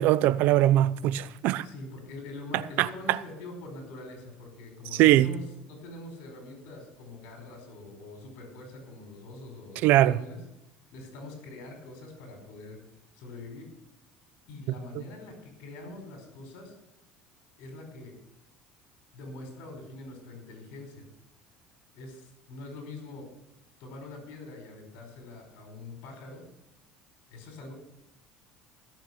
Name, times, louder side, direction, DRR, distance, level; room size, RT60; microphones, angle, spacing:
voice 1, 0.0-1.6 2.8-2.9 4.9-5.3 9.8-10.2, right 14 dB, 65° right, 0.7 m, -21 dB
voice 2, 1.6-10.4 10.9-12.8 13.1-13.7 14.5-16.7 17.6-18.1 19.1-21.1 21.9-23.3 23.8-26.4 27.3-27.7, left 2 dB, 75° left, 4.8 m, -44 dB
16.5 x 7.3 x 8.0 m
cardioid pair, 115°, 3 cm